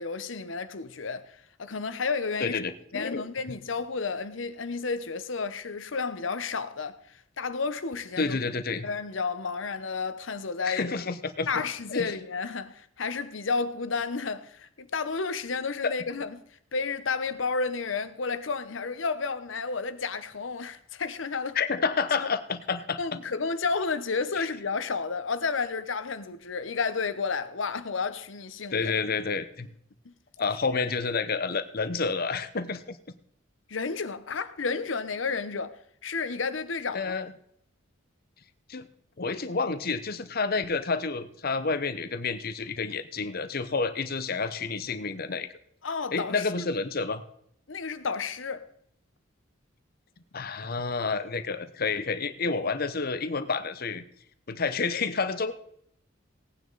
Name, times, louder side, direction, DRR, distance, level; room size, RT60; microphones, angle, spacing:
voice 1, 0.0-2.6 2.9-8.4 8.8-11.0 11.5-16.4 16.7-21.6 22.2-22.3 23.0-28.9 30.0-30.1 30.7-30.8 33.7-37.1 45.8-46.5 47.7-48.7, left 4 dB, 80° left, 0.9 m, -31 dB
voice 2, 2.4-3.2 8.2-8.9 10.6-11.5 11.9-12.1 15.8-15.9 21.5-23.0 28.7-29.7 30.4-33.0 36.9-37.3 38.7-38.9 39.2-45.5 46.1-47.2 50.3-54.0 54.5-55.5, left 4 dB, 50° left, 0.9 m, -29 dB
17.5 x 9.4 x 4.0 m
head